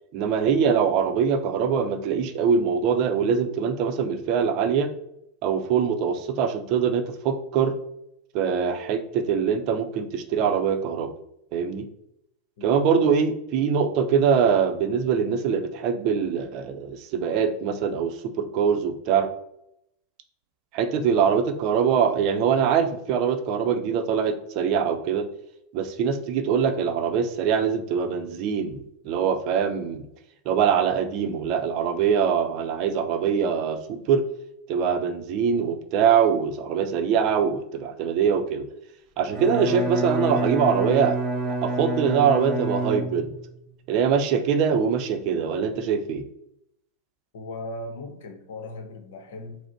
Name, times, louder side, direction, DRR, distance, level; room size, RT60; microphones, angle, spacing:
voice 1, 0.1-4.9 5.4-7.7 8.3-11.1 11.5-11.9 12.6-18.1 18.4-19.3 20.7-25.3 25.7-30.1 30.5-34.2 34.7-38.6 39.2-41.2 41.6-43.3 43.9-46.2, right 7 dB, 50° right, 7 dB, 0.5 m, -23 dB
Bowed string instrument, 39.3-43.6, right 1 dB, 20° right, 1.2 m, -28 dB
voice 2, 47.3-49.6, left 2 dB, 65° left, 5 dB, 0.8 m, -38 dB
4.9 x 2.1 x 3.9 m, 0.78 s
hypercardioid pair, 90°, 0 cm